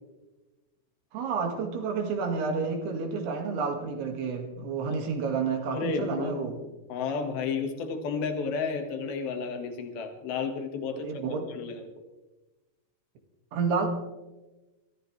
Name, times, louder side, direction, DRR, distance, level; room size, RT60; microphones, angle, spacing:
voice 1, 1.1-6.6 10.9-11.5 13.5-13.9, right 5 dB, 85° right, 3 dB, 4.0 m, -30 dB
voice 2, 5.7-6.5 6.9-11.1 11.5-11.8, left 5 dB, 70° left, 5 dB, 3.5 m, -32 dB
27.0 x 14.5 x 3.3 m, 1.1 s
omnidirectional pair, 4.5 m